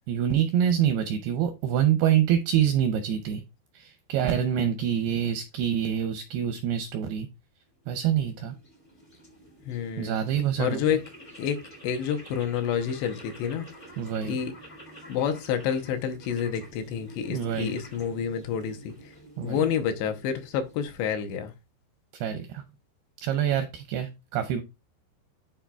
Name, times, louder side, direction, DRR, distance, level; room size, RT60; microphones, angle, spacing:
voice 1, 0.1-3.4 3.7-7.3 7.9-8.6 10.0-10.8 14.0-14.4 17.3-17.8 19.4-19.7 22.1-22.6 23.2-24.6, right 9 dB, 80° right, 2.3 m, -26 dB
sound 1, 7.8-21.3, equal, 25° left, 0.9 m, -49 dB
voice 2, 9.7-10.2 10.6-11.0 11.4-11.6 11.8-13.7 14.3-14.5 15.1-18.9 19.4-21.5, left 8 dB, 75° left, 2.9 m, -28 dB
11.5 x 4.4 x 2.3 m
omnidirectional pair, 5.2 m